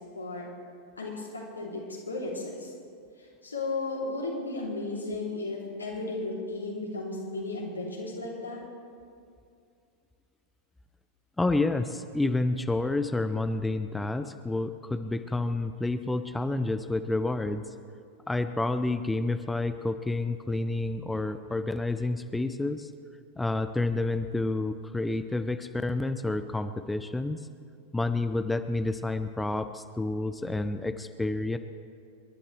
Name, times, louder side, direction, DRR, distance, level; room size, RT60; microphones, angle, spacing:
voice 1, 0.1-0.5 1.0-2.7 3.2-8.6, left 2 dB, 80° left, -3 dB, 3.0 m, -34 dB
voice 2, 11.4-17.7 18.3-22.9 23.4-27.4 27.9-31.6, left 2 dB, 5° left, 9 dB, 0.5 m, -29 dB
28.5 x 11.5 x 3.3 m, 2.4 s
figure-of-eight pair, 90°, 0 cm